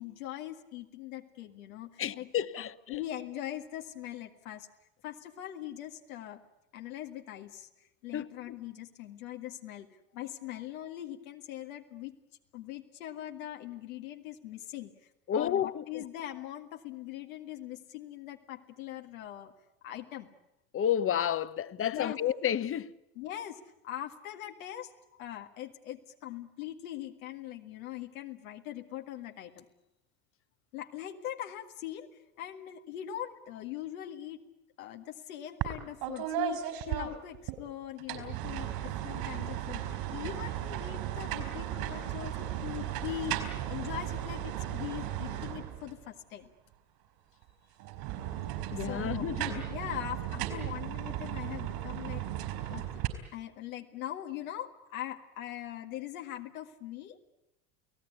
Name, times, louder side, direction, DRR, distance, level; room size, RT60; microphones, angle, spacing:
voice 1, 0.0-2.3 2.6-4.7 5.0-6.4 6.7-7.7 8.0-9.9 10.1-12.1 12.5-14.9 15.3-19.5 19.8-20.3 21.8-22.2 23.2-24.9 25.2-29.6 30.7-32.1 32.4-34.4 34.8-43.4 43.7-46.5 48.8-49.3 49.7-52.2 52.7-52.8 53.3-57.2, left 12 dB, 85° left, 2.0 m, -41 dB
voice 2, 2.0-2.7 8.1-8.3 15.3-16.0 20.7-22.9 48.7-49.7, left 9 dB, 30° left, 1.0 m, -31 dB
sound 1, 35.6-35.8 36.0-37.6 38.0-46.0 47.8-53.1, right 12 dB, 70° right, 4.9 m, -36 dB
29.5 x 17.5 x 9.5 m
supercardioid pair, 95°, 40 cm